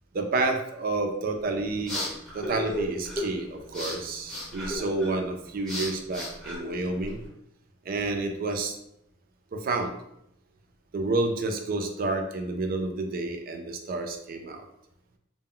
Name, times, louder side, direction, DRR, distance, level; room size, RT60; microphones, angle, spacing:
voice 1, 0.1-2.0 2.3-7.2 7.9-8.8 9.5-9.9 10.9-14.6, right 2 dB, 45° right, 4 dB, 0.4 m, -29 dB
sound 1, 1.4-7.3, equal, ahead, 0.8 m, -36 dB
2.1 x 2.1 x 3.6 m, 0.78 s
head